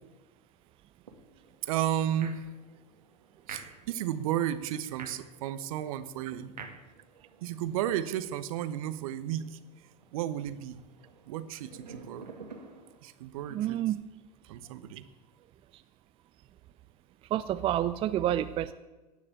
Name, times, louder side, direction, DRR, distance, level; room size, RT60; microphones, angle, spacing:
sound 1, 1.1-13.0, right 4 dB, 80° right, 2.2 m, -51 dB
voice 1, 1.6-2.4 3.5-6.5 7.4-9.6 10.1-10.8 11.3-12.3 13.0-13.8 14.5-15.1, right 11 dB, 55° right, 13 dB, 1.0 m, -33 dB
voice 2, 13.5-14.0 17.3-18.7, right 12 dB, 25° right, 12 dB, 0.5 m, -28 dB
17.5 x 6.6 x 8.7 m, 1.2 s
figure-of-eight pair, 90°, 21 cm